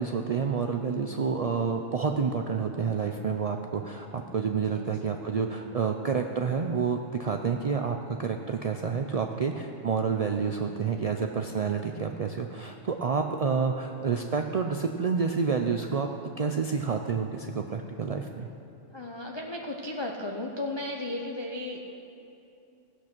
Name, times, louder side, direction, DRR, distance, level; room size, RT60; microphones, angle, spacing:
voice 1, 0.0-16.1 16.4-18.5, right 5 dB, 65° right, 4 dB, 0.3 m, -29 dB
voice 2, 4.7-5.0 18.9-21.9, left 2 dB, 25° left, 0 dB, 0.6 m, -35 dB
16.0 x 8.1 x 6.0 m, 2.7 s
omnidirectional pair, 1.4 m